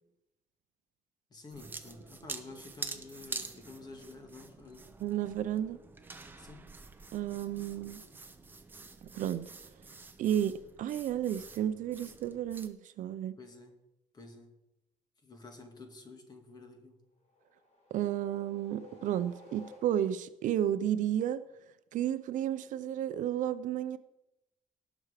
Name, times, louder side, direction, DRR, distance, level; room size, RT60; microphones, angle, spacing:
voice 1, 1.3-4.9 6.4-6.7 13.4-13.8 14.1-14.6 15.2-17.0, left 3 dB, 30° left, 1.8 m, -50 dB
sound 1, 1.5-12.7, right 3 dB, 15° right, 0.8 m, -47 dB
voice 2, 5.0-5.8 7.1-8.0 9.1-9.5 10.2-13.4 17.9-21.4 21.9-24.0, right 10 dB, 65° right, 0.6 m, -32 dB
sound 2, 17.2-20.3, left 3 dB, 50° left, 4.0 m, -55 dB
18.5 x 6.2 x 4.9 m
cardioid pair, 165°, 14 cm